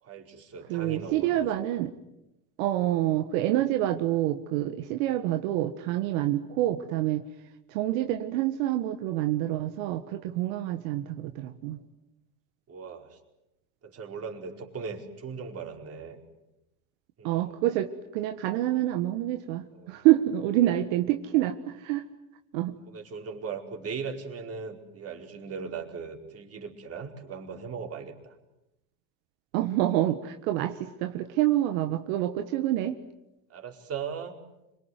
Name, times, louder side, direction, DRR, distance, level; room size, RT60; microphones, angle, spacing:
voice 1, 0.0-1.7 10.5-10.6 12.7-13.2 13.8-16.2 17.2-17.6 19.7-20.1 20.7-20.8 22.9-28.4 32.6-32.7 33.5-34.4, right 5 dB, 35° right, 3 dB, 4.9 m, -39 dB
voice 2, 0.7-1.9 2.6-7.2 7.7-11.8 17.2-22.0 22.5-22.7 29.5-33.0, right 14 dB, 75° right, 7 dB, 1.7 m, -27 dB
26.5 x 23.5 x 9.5 m, 0.91 s
supercardioid pair, 100°, 40 cm